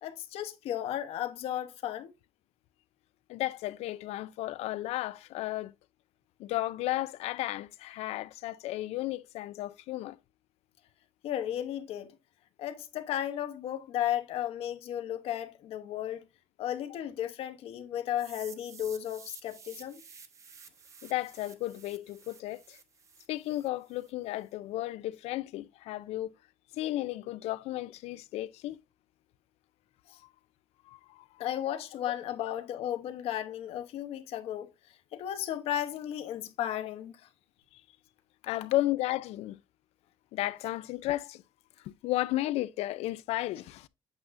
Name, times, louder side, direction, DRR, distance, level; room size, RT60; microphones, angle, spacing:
voice 1, 0.0-2.1 11.2-12.2 12.6-16.2 16.6-20.0 30.1-30.2 31.4-34.7 35.1-37.1, left 11 dB, 70° left, 1.0 m, -34 dB
voice 2, 3.3-5.7 6.4-10.2 21.0-22.8 23.3-26.3 26.7-28.8 30.9-31.4 37.7-37.8 38.5-39.6 40.3-41.4 41.8-43.9, left 16 dB, 90° left, 0.5 m, -34 dB
sound 1, 18.2-24.1, right 6 dB, 30° right, 0.8 m, -52 dB
8.3 x 6.3 x 2.6 m
cardioid pair, 180°, 11 cm